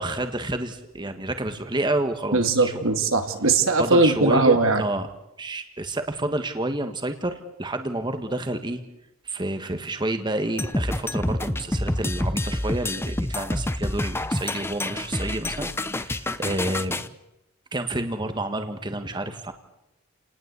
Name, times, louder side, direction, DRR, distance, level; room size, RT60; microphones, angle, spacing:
voice 1, 0.0-2.8 3.8-5.1 5.4-8.8 9.2-17.0 17.7-19.5, right 1 dB, 20° right, 7 dB, 1.6 m, -29 dB
voice 2, 2.3-4.8, right 3 dB, 75° right, 6 dB, 2.5 m, -20 dB
sound 1, 10.6-17.1, left 1 dB, 10° left, 0.8 m, -28 dB
29.5 x 19.5 x 8.3 m, 0.91 s
head